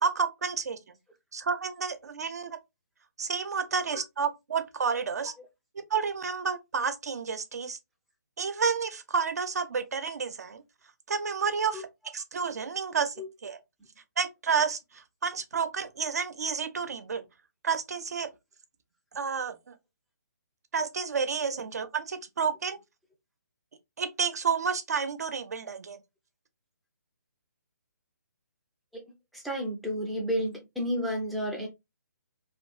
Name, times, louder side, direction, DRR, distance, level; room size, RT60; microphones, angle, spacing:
voice 1, 0.0-0.8 1.3-2.6 3.2-5.3 5.7-7.8 8.4-10.6 11.1-11.9 12.1-13.2 13.4-13.6 14.2-17.2 17.6-18.3 19.1-19.7 20.7-22.8 24.0-26.0, right 5 dB, 60° right, 0.4 m, -30 dB
voice 2, 29.3-31.7, equal, ahead, 0.4 m, -31 dB
2.5 x 2.2 x 2.2 m
figure-of-eight pair, 140°, 10 cm